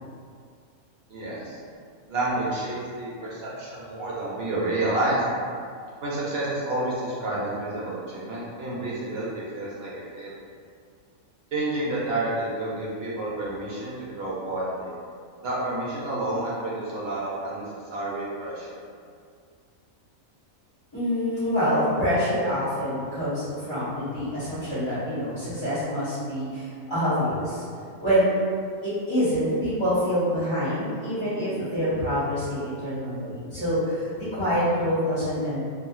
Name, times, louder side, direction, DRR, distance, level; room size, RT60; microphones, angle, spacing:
voice 1, 1.1-1.6 2.1-5.2 6.0-10.3 11.5-14.9 15.4-18.8, right 2 dB, 60° right, -7 dB, 0.7 m, -29 dB
voice 2, 20.9-27.6 28.0-28.3 28.8-35.6, equal, 20° left, -15 dB, 1.5 m, -26 dB
2.7 x 2.6 x 2.4 m, 2.2 s
omnidirectional pair, 1.4 m